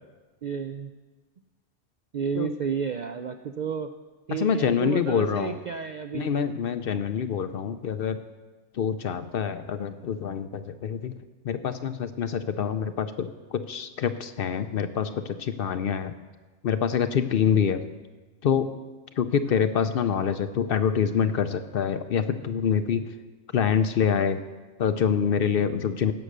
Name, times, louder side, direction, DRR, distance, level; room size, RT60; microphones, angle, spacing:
voice 1, 0.4-0.9 2.1-3.9 4.3-6.3, right 6 dB, 60° right, 8 dB, 0.4 m, -31 dB
voice 2, 4.3-5.6 6.1-8.2 8.7-11.1 11.4-16.1 16.6-17.8 18.4-18.7 19.2-23.0 23.5-24.4 24.8-26.1, left 7 dB, 60° left, 11 dB, 0.7 m, -26 dB
16.0 x 6.2 x 6.6 m, 1.3 s
omnidirectional pair, 1.2 m